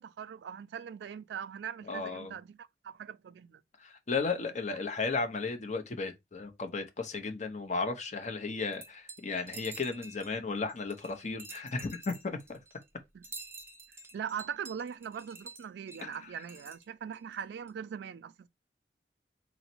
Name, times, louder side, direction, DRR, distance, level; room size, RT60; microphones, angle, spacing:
voice 1, 0.0-3.6 13.1-13.2 14.1-18.5, right 8 dB, 65° right, 0.3 m, -41 dB
voice 2, 1.9-2.3 3.8-12.6 16.0-16.2, left 4 dB, 45° left, 0.7 m, -34 dB
sound 1, 8.7-10.4 10.7-12.9 13.2-16.8 17.1-17.4 17.7-17.8, right 3 dB, 15° right, 0.7 m, -49 dB
3.9 x 2.1 x 4.3 m
head